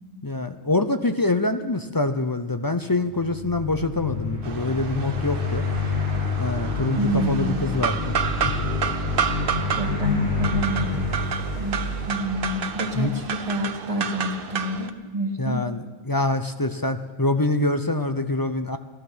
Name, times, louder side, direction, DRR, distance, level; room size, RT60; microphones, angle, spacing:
voice 1, 0.2-5.6 6.4-8.6 12.9-13.1 15.4-18.8, left 2 dB, 25° left, 8 dB, 0.5 m, -25 dB
sound 1, 3.1-13.3, left 3 dB, 55° left, 7.1 m, -28 dB
sound 2, 4.4-14.9, right 7 dB, 60° right, 0.9 m, -31 dB
voice 2, 7.0-7.7 9.8-11.0 11.6-15.6, equal, 35° right, 1 dB, 2.1 m, -28 dB
sound 3, 8.2-9.8, right 5 dB, 75° right, 1.5 m, -38 dB
16.0 x 12.5 x 6.2 m, 1.4 s
omnidirectional pair, 1.1 m